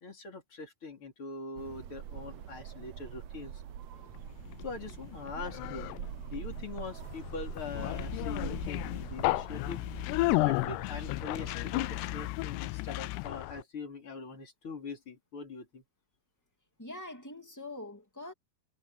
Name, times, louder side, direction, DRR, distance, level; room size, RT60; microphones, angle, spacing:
voice 1, 0.0-3.6 4.6-5.9 6.3-9.8 10.3-15.8, left 4 dB, 35° left, 4.2 m, -42 dB
sound 1, 1.6-12.3, right 10 dB, 85° right, 1.5 m, -44 dB
Conversation, 4.1-13.6, left 21 dB, 90° left, 2.7 m, -33 dB
voice 2, 16.8-18.3, left 2 dB, 5° left, 1.5 m, -43 dB
omnidirectional pair, 4.7 m